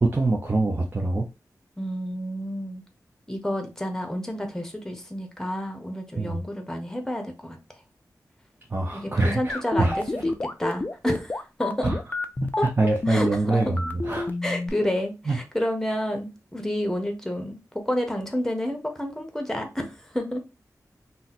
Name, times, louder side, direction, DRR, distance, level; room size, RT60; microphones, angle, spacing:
voice 1, 0.0-1.2 6.2-6.4 8.7-10.0 11.8-12.0 12.8-13.7 14.1-14.3 15.3-15.4, right 2 dB, 30° right, 0.5 m, -24 dB
voice 2, 1.8-2.8 3.3-7.6 8.9-10.3 10.6-11.9 12.6-12.7 13.1-13.8 14.4-17.6 17.9-20.4, left 1 dB, 5° left, 0.8 m, -30 dB
sound 1, 9.5-14.7, left 2 dB, 25° left, 0.4 m, -28 dB
2.7 x 2.1 x 4.0 m
wide cardioid pair, 80°, 7 cm